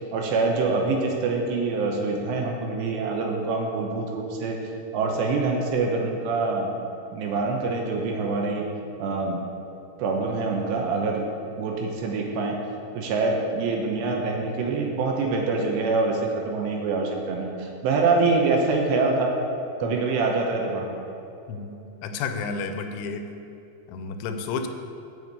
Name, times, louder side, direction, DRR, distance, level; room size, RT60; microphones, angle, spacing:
voice 1, 0.1-4.6 4.9-6.7 7.1-8.7 9.0-9.4 10.0-11.3 11.6-12.6 12.9-19.3 19.8-20.9, right 3 dB, 75° right, 1 dB, 2.8 m, -25 dB
voice 2, 22.0-23.3 23.9-24.7, left 4 dB, 85° left, 7 dB, 3.1 m, -31 dB
7.9 x 7.1 x 8.1 m, 3.0 s
omnidirectional pair, 5.5 m